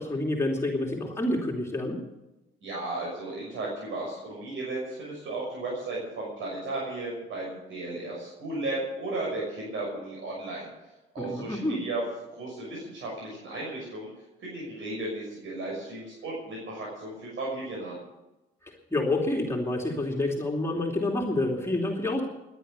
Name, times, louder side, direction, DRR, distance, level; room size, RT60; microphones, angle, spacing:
voice 1, 0.0-2.0 11.2-11.8 18.6-22.2, left 2 dB, 15° left, 0 dB, 2.8 m, -28 dB
voice 2, 2.6-10.7 11.1-12.0 12.3-14.1 14.4-18.0, right 2 dB, 75° right, -4 dB, 6.5 m, -35 dB
18.0 x 11.0 x 6.8 m, 0.98 s
cardioid pair, 90°, 20 cm